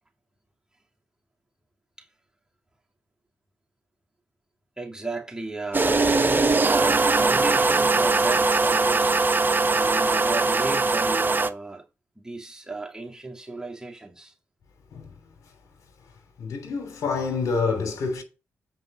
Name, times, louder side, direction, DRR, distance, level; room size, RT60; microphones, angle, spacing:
voice 1, 4.8-11.8 12.2-14.3, right 2 dB, 10° right, 2.7 m, -35 dB
sound 1, 5.7-11.5, right 3 dB, 35° right, 1.0 m, -21 dB
voice 2, 16.4-18.2, left 4 dB, 70° left, 3.2 m, -27 dB
7.8 x 5.4 x 6.2 m
hypercardioid pair, 40°, 6 cm